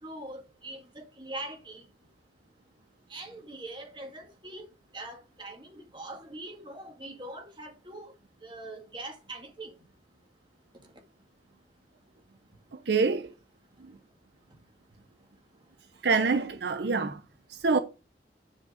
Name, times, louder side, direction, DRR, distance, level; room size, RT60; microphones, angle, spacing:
voice 1, 0.0-1.8 3.1-4.7 4.9-8.1 8.4-9.7, right 2 dB, 25° right, 2.0 m, -42 dB
voice 2, 12.9-13.3 16.0-17.2 17.5-17.8, right 4 dB, 70° right, 0.6 m, -25 dB
9.9 x 4.7 x 5.1 m
head